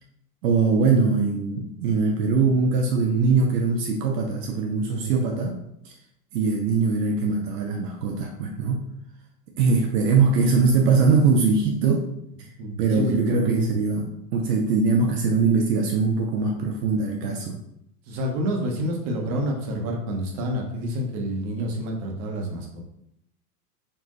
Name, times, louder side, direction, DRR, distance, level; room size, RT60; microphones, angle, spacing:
voice 1, 0.4-5.6 5.8-5.9 6.3-8.9 9.6-12.1 12.8-17.6, right 4 dB, 80° right, 1 dB, 0.7 m, -22 dB
voice 2, 4.9-5.2 12.6-13.7 18.1-22.8, equal, 50° right, 1 dB, 1.2 m, -28 dB
4.4 x 2.7 x 3.1 m, 0.76 s
hypercardioid pair, 115°, 47 cm